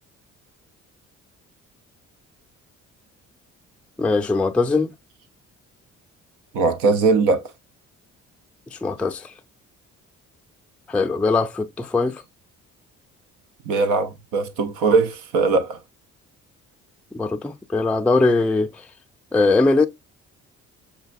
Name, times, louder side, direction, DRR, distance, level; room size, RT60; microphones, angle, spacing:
voice 1, 4.0-4.9 8.7-9.3 10.9-12.2 17.1-18.9 19.3-19.9, left 3 dB, 5° left, 0.4 m, -21 dB
voice 2, 6.5-7.5 13.7-15.8, right 4 dB, 85° right, 0.7 m, -20 dB
6.7 x 2.2 x 2.5 m
cardioid pair, 90°, 30 cm